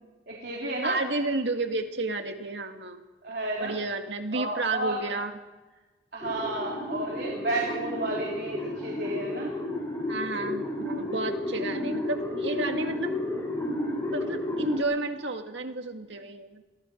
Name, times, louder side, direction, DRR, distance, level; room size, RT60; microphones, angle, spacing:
voice 1, 0.3-1.0 3.2-3.7 4.3-5.0 6.1-9.5, right 2 dB, 60° right, -2 dB, 3.8 m, -32 dB
voice 2, 0.8-3.0 3.6-5.3 10.1-13.2 14.1-16.6, right 2 dB, 85° right, 5 dB, 2.1 m, -31 dB
sound 1, 6.2-14.8, left 1 dB, 15° left, 7.5 m, -32 dB
30.0 x 23.0 x 4.6 m, 1.2 s
head